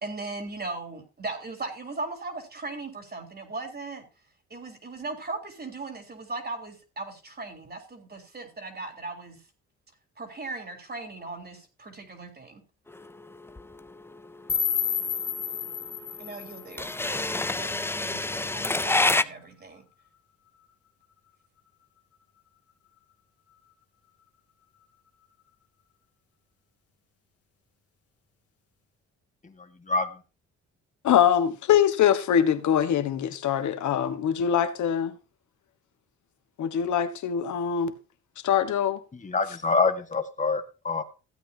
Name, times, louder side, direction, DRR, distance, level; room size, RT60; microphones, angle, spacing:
voice 1, 0.0-4.1 4.5-9.4 10.2-12.6 16.2-19.8, right 3 dB, 30° right, 3.6 m, -38 dB
sound 1, 12.9-19.2, left 2 dB, 10° left, 0.5 m, -27 dB
sound 2, 14.5-17.5, left 8 dB, 50° left, 2.3 m, -31 dB
voice 2, 31.0-35.2 36.6-37.9 38.4-39.0, left 9 dB, 75° left, 1.5 m, -23 dB
voice 3, 39.2-41.0, left 4 dB, 25° left, 1.7 m, -25 dB
15.5 x 8.8 x 2.8 m
cardioid pair, 90°, 30 cm